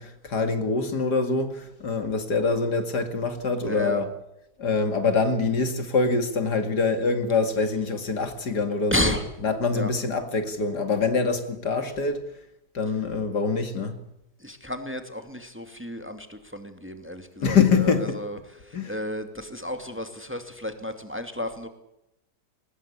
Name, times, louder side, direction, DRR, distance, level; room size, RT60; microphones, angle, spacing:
voice 1, 0.0-4.1 4.6-9.1 9.4-12.3 12.7-14.0 17.4-18.2 18.7-19.0, left 4 dB, 70° left, 2.9 m, -25 dB
voice 2, 3.7-4.0 8.9-9.2 9.7-9.9 14.4-21.7, left 1 dB, 5° right, 2.4 m, -32 dB
23.0 x 20.0 x 8.5 m
omnidirectional pair, 1.8 m